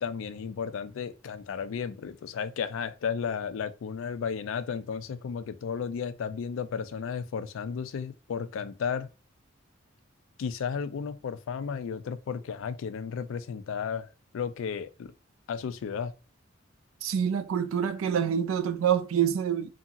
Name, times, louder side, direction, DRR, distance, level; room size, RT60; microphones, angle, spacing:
voice 1, 0.0-9.1 10.4-14.1 14.3-15.1 15.5-16.1, left 6 dB, 75° left, 0.3 m, -33 dB
voice 2, 17.0-19.7, right 8 dB, 80° right, 0.4 m, -26 dB
2.8 x 2.6 x 2.5 m
head